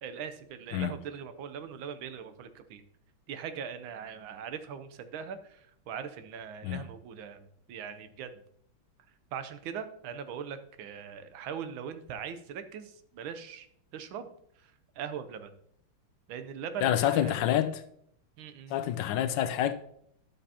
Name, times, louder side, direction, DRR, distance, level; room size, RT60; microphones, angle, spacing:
voice 1, 0.0-2.8 3.3-8.4 9.3-13.7 13.9-14.3 14.6-15.5 16.3-17.3 18.4-18.8, right 7 dB, 90° right, 1.6 m, -41 dB
voice 2, 16.8-17.8 18.7-19.7, left 11 dB, 75° left, 1.2 m, -27 dB
11.5 x 6.7 x 2.8 m
omnidirectional pair, 2.1 m